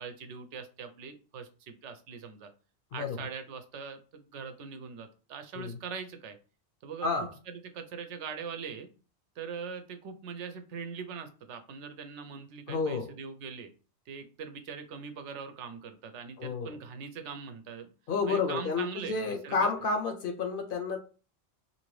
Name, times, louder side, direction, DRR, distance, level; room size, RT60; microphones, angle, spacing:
voice 1, 0.0-2.5 2.9-6.4 6.8-7.1 7.5-8.9 9.4-13.7 14.1-17.9 18.3-19.7, right 6 dB, 80° right, 8 dB, 0.9 m, -42 dB
voice 2, 12.7-13.1 16.4-16.7 18.1-21.0, left 4 dB, 60° left, 5 dB, 0.6 m, -30 dB
2.7 x 2.6 x 3.1 m, 0.35 s
omnidirectional pair, 1.2 m